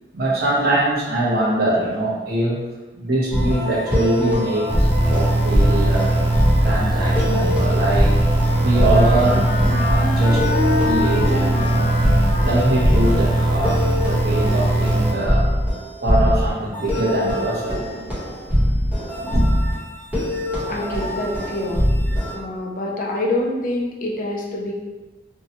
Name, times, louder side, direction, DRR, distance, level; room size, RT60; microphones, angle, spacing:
voice 1, 0.1-6.2 6.6-8.2 8.6-11.9 12.4-15.5 16.0-17.9 19.2-19.5, right 1 dB, 60° right, -5 dB, 0.7 m, -23 dB
sound 1, 3.3-22.3, equal, 10° right, 1.0 m, -22 dB
sound 2, 4.7-15.1, right 2 dB, 30° right, 0.4 m, -20 dB
Wind instrument woodwind instrument, 8.4-13.7, left 3 dB, 20° left, 0.9 m, -27 dB
voice 2, 20.7-21.9 22.3-24.7, left 1 dB, 50° left, -1 dB, 0.5 m, -26 dB
2.6 x 2.2 x 2.8 m, 1.2 s
head